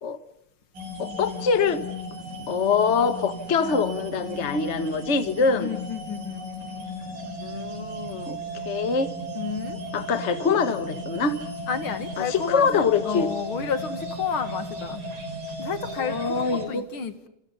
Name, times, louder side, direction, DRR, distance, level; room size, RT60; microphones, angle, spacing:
sound 1, 0.7-16.7, equal, 85° right, 7.0 m, -35 dB
voice 1, 1.0-1.8 2.5-5.7 7.4-9.1 9.9-11.4 12.2-13.3 16.0-16.9, left 5 dB, 65° left, 10 dB, 0.6 m, -24 dB
voice 2, 5.6-6.5 9.3-9.8 11.7-15.0 15.6-17.3, left 6 dB, 45° left, 10 dB, 2.2 m, -31 dB
29.5 x 27.5 x 5.6 m, 0.78 s
omnidirectional pair, 3.8 m